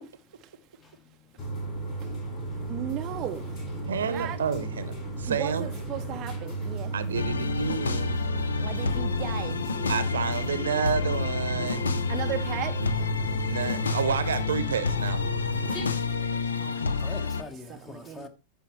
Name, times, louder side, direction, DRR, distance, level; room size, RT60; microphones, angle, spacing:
sound 1, 1.4-15.8, right 2 dB, 45° left, 3.6 m, -34 dB
voice 1, 2.7-3.5 4.1-4.4 5.3-6.9 8.6-9.6 12.1-12.8 16.5-18.3, right 12 dB, 35° right, 0.5 m, -36 dB
voice 2, 3.9-5.7 6.9-8.2 9.9-11.9 13.5-15.2, right 7 dB, 65° right, 0.8 m, -30 dB
sound 2, 7.1-17.4, left 5 dB, 70° left, 0.6 m, -29 dB
voice 3, 15.4-18.3, left 4 dB, 20° left, 1.1 m, -45 dB
12.5 x 4.9 x 3.0 m
figure-of-eight pair, 90°, 0 cm